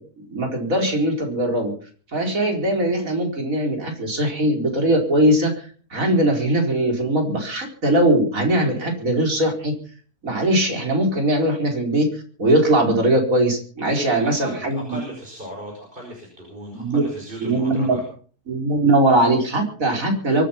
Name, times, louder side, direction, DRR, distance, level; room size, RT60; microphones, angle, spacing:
voice 1, 0.3-1.7 2.1-9.7 10.2-14.8 16.7-17.0 17.4-17.9 18.5-20.4, right 1 dB, 60° right, 2 dB, 5.0 m, -20 dB
voice 2, 13.9-18.0, equal, 35° right, -1 dB, 5.6 m, -36 dB
24.0 x 9.5 x 5.8 m, 0.43 s
omnidirectional pair, 1.6 m